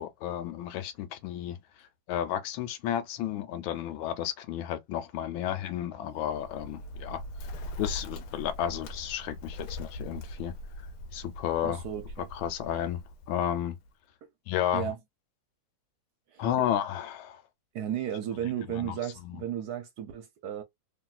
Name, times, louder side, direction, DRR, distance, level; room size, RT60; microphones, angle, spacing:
voice 1, 0.0-1.6 2.1-7.2 7.8-10.5 11.1-11.8 12.3-13.0 13.3-13.8 14.5-14.9 16.4-17.4 18.8-19.0 19.2-19.4, left 10 dB, 90° left, 1.4 m, -32 dB
Bird, 6.1-13.9, left 1 dB, 70° left, 1.0 m, -41 dB
voice 2, 11.6-12.3 14.2-14.3 14.7-15.0 16.3-16.4 17.7-20.6, right 10 dB, 65° right, 1.1 m, -34 dB
3.1 x 2.6 x 2.3 m
omnidirectional pair, 2.1 m